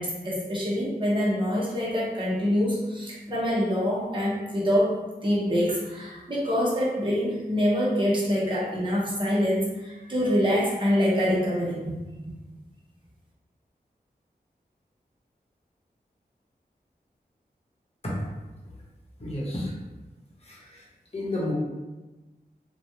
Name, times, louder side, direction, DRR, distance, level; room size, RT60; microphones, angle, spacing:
voice 1, 0.0-5.0 5.2-11.8, equal, 30° right, -6 dB, 0.9 m, -25 dB
voice 2, 19.2-19.7 20.4-20.8 21.1-21.5, left 1 dB, 40° left, -5 dB, 0.9 m, -31 dB
3.1 x 2.2 x 2.8 m, 1.1 s
wide cardioid pair, 65°, 17 cm